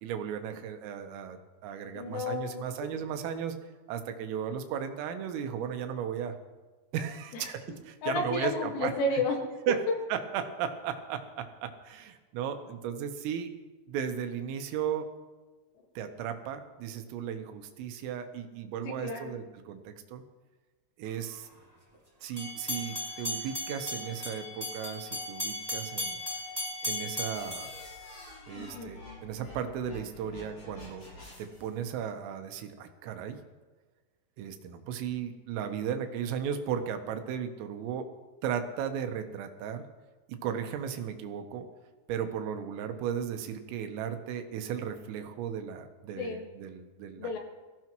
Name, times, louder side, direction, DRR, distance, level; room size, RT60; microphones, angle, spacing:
voice 1, 0.0-3.6 3.9-6.4 6.9-9.0 9.7-13.5 13.9-15.1 16.0-20.2 21.0-21.5 22.2-26.2 26.8-27.7 28.5-31.1 31.4-33.4 34.4-38.1 38.4-39.9 40.3-41.7 42.1-47.3, right 8 dB, 80° right, 7 dB, 3.6 m, -35 dB
voice 2, 1.9-2.6 7.3-7.5 8.0-9.4 18.8-19.4 28.6-28.9 46.2-46.5 47.2-47.4, left 2 dB, 65° left, 1 dB, 3.6 m, -32 dB
sound 1, 22.4-28.6, left 1 dB, 15° right, 0.8 m, -36 dB
sound 2, 27.3-31.7, left 2 dB, 30° left, 7.5 m, -49 dB
22.5 x 15.5 x 3.1 m, 1.3 s
omnidirectional pair, 5.9 m